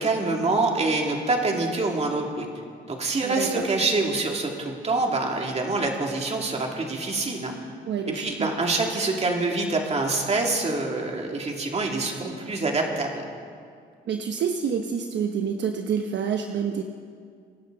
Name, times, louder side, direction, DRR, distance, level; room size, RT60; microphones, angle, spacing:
voice 1, 0.0-2.5 2.9-7.5 8.1-13.2, right 3 dB, 35° right, 1 dB, 2.6 m, -26 dB
voice 2, 3.2-3.7 7.9-8.5 14.1-16.8, right 7 dB, 65° right, 4 dB, 0.9 m, -28 dB
25.0 x 11.5 x 3.9 m, 2.2 s
cardioid pair, 90°, 20 cm